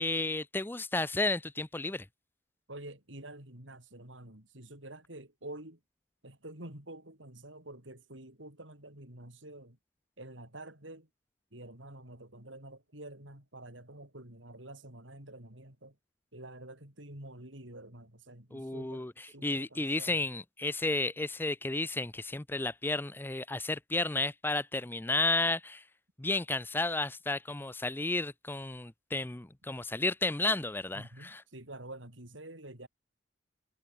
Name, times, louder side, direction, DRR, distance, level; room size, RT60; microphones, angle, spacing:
voice 1, 0.0-2.1 18.5-25.8 26.2-31.4, left 2 dB, 10° left, 0.6 m, -32 dB
voice 2, 2.7-5.8 6.2-9.8 10.2-11.1 11.5-15.9 16.3-20.2 30.9-32.9, right 1 dB, 75° right, 6.5 m, -48 dB
head